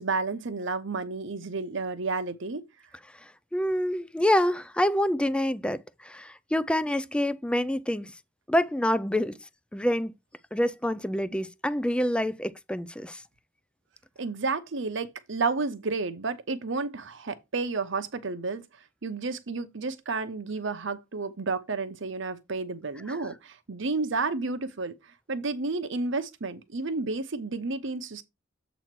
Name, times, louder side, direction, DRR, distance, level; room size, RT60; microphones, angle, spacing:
voice 1, 0.0-2.6 14.2-18.6 19.0-24.9 25.3-28.2, right 3 dB, 65° right, 0.9 m, -31 dB
voice 2, 3.2-8.1 8.5-9.4 9.7-10.1 10.5-13.2 23.1-23.2, left 1 dB, 5° left, 0.4 m, -27 dB
7.8 x 3.1 x 5.9 m
head